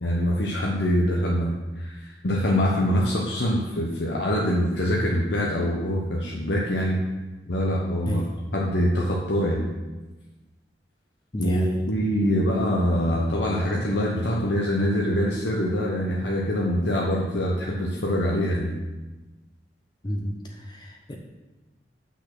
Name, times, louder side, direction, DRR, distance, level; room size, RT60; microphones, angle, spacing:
voice 1, 0.0-7.0 7.5-8.2 8.5-9.6 11.4-18.7, equal, 70° left, -3 dB, 1.0 m, -24 dB
voice 2, 11.3-11.8 20.0-20.4 20.7-21.2, equal, 25° left, 1 dB, 0.6 m, -30 dB
6.3 x 5.8 x 6.0 m, 1.2 s
head